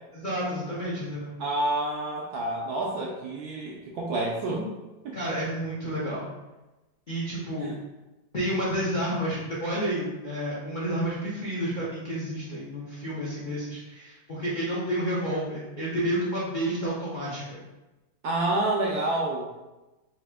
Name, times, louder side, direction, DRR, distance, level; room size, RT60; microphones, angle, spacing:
voice 1, 0.1-1.4 5.1-6.3 7.1-7.7 8.3-17.6, equal, 85° left, -8 dB, 0.4 m, -30 dB
voice 2, 1.4-4.7 5.0-5.2 7.6-7.7 18.2-19.5, right 2 dB, 75° right, -3 dB, 0.9 m, -28 dB
4.2 x 2.7 x 3.4 m, 1.1 s
omnidirectional pair, 2.2 m